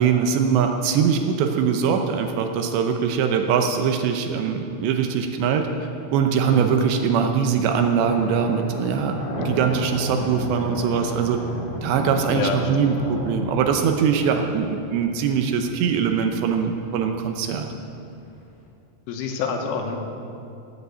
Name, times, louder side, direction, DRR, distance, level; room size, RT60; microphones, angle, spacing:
voice 1, 0.0-5.7 6.1-11.4 11.8-17.7, right 7 dB, 75° right, 5 dB, 2.8 m, -22 dB
sound 1, 4.8-18.7, left 2 dB, 60° left, 3.7 m, -35 dB
voice 2, 19.1-20.0, left 6 dB, 85° left, 3 dB, 3.8 m, -27 dB
17.0 x 8.1 x 8.2 m, 2.6 s
omnidirectional pair, 5.5 m